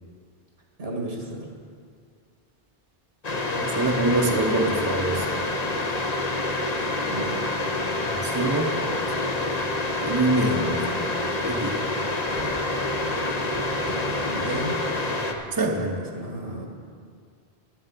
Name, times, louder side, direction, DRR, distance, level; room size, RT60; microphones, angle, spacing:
voice 1, 0.8-1.5 7.1-7.4 13.9-14.8 15.8-16.7, right 1 dB, 75° right, 0 dB, 2.1 m, -34 dB
sound 1, 3.2-15.3, left 2 dB, 40° left, 1.0 m, -27 dB
voice 2, 3.5-5.4 8.1-8.7 10.0-10.9 11.4-11.9 15.5-15.9, right 2 dB, 20° right, 1 dB, 0.9 m, -25 dB
sound 2, 12.3-15.0, right 1 dB, 90° left, 2.4 m, -42 dB
11.5 x 7.4 x 8.3 m, 2.1 s
omnidirectional pair, 1.0 m